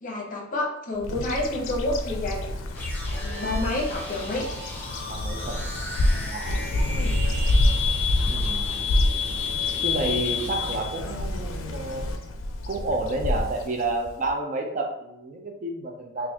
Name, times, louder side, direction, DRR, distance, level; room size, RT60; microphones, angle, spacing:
voice 1, 0.0-2.5 3.1-4.5 6.9-7.2, left 2 dB, 40° left, -1 dB, 0.8 m, -29 dB
Bird vocalization bird call bird song, 1.0-14.3, left 1 dB, 75° left, 0.4 m, -28 dB
sound 1, 2.7-11.0, left 6 dB, 10° left, 1.2 m, -32 dB
voice 2, 5.1-5.7 6.3-6.7 8.3-8.8 9.8-12.2 12.7-16.3, right 2 dB, 40° right, 2 dB, 0.5 m, -30 dB
4.0 x 2.5 x 2.8 m, 0.83 s
head